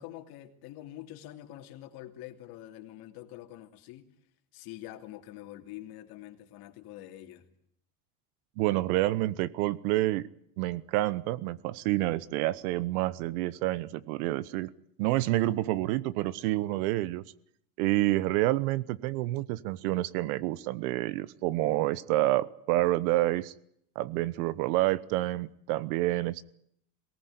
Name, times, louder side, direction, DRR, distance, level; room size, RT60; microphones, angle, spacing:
voice 1, 0.0-4.1 4.5-7.5, left 14 dB, 55° left, 2.9 m, -45 dB
voice 2, 8.6-10.3 10.6-14.7 15.0-17.2 17.8-23.5 23.9-26.4, right 17 dB, 80° right, 1.2 m, -28 dB
22.5 x 19.0 x 9.6 m
cardioid pair, 150°, 43 cm